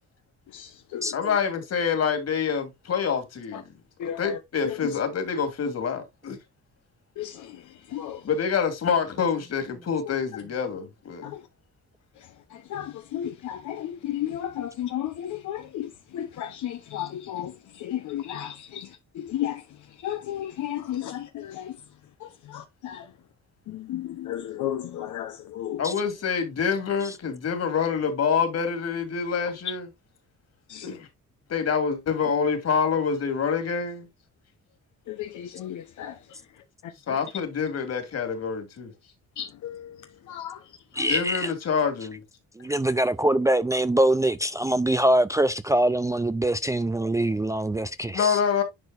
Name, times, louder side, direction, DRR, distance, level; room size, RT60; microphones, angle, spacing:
voice 1, 1.1-3.7 4.0-6.4 8.2-11.3 25.8-29.9 30.8-31.1 31.5-34.1 37.1-38.9 41.1-42.2 48.1-48.6, left 6 dB, 55° left, 2.8 m, -26 dB
voice 2, 4.0-4.3 7.2-7.3 7.9-8.2 11.2-11.3 12.7-17.5 17.8-18.5 19.2-19.6 20.0-21.7 22.5-23.0 23.9-25.8 30.7-30.8 35.1-36.1 39.4-39.8 40.3-40.6, left 11 dB, 75° left, 1.0 m, -33 dB
voice 3, 40.9-41.5 42.6-48.4, right 1 dB, 10° right, 0.4 m, -23 dB
10.5 x 4.6 x 2.5 m
cardioid pair, 90°, 30 cm